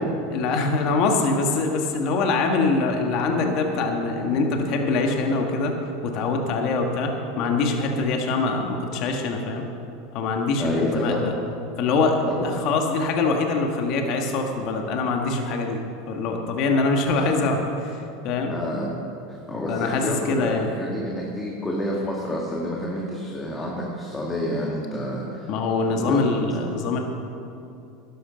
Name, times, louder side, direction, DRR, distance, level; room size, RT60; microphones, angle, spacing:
voice 1, 0.3-5.7 6.0-9.6 10.1-11.3 11.8-15.8 16.1-18.5 19.7-20.7 25.5-27.0, left 3 dB, 55° left, 3 dB, 1.7 m, -24 dB
voice 2, 10.6-11.3 12.3-12.5 18.5-19.0 19.5-25.5 25.9-26.2, left 1 dB, 15° left, -3 dB, 1.9 m, -28 dB
12.0 x 11.5 x 5.2 m, 2.6 s
supercardioid pair, 110°, 0 cm